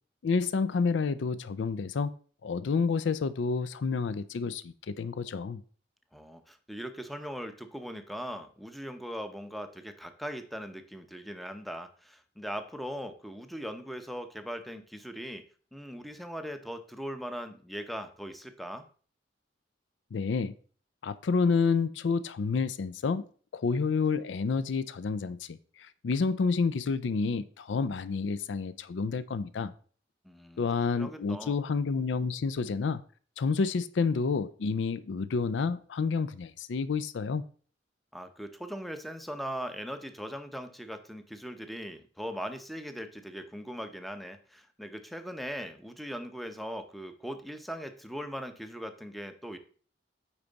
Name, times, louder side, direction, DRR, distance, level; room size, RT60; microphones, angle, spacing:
voice 1, 0.2-2.1 2.4-5.6 20.1-20.5 21.0-23.3 23.5-29.7 30.6-33.0 33.4-37.4, left 4 dB, 75° left, 0.4 m, -29 dB
voice 2, 6.1-15.4 15.7-18.9 30.2-30.7 31.0-31.6 38.1-49.6, equal, ahead, 0.7 m, -40 dB
8.7 x 4.6 x 4.0 m
head